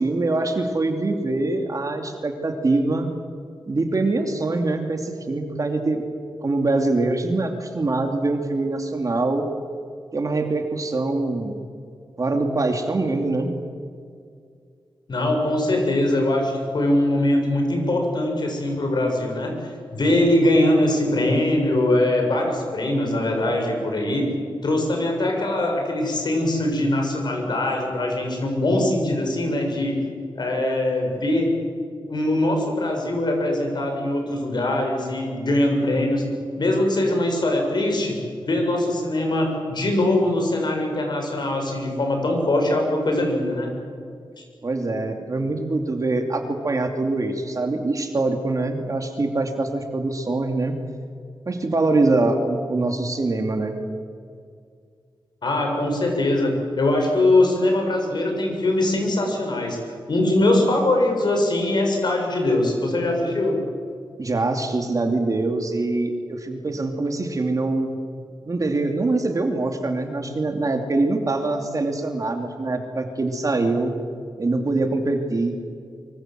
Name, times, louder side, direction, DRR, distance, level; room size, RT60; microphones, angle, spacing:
voice 1, 0.0-3.1 3.7-6.0 6.4-9.5 10.1-11.5 12.2-13.6 44.6-50.8 51.5-53.8 64.2-67.9 68.5-74.0 74.4-75.5, right 2 dB, 40° right, 4 dB, 2.9 m, -24 dB
voice 2, 15.1-24.3 24.6-30.0 30.4-31.5 32.1-36.3 36.6-38.2 38.4-43.7 44.4-44.5 55.4-63.6, left 1 dB, 55° left, 2 dB, 6.9 m, -22 dB
24.5 x 24.5 x 7.7 m, 2.2 s
wide cardioid pair, 115°, 9 cm